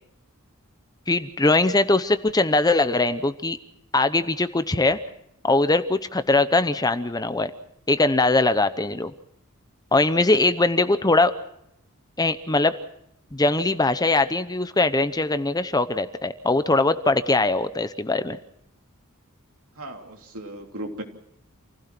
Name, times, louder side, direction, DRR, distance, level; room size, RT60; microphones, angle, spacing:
voice 1, 1.1-3.6 3.9-5.0 5.4-7.5 7.9-9.1 9.9-11.3 12.2-12.7 13.3-18.4, left 2 dB, 20° left, 12 dB, 0.8 m, -21 dB
voice 2, 10.0-10.4 19.8-21.0, right 1 dB, 75° right, 3 dB, 3.3 m, -36 dB
28.0 x 16.0 x 6.0 m, 0.77 s
head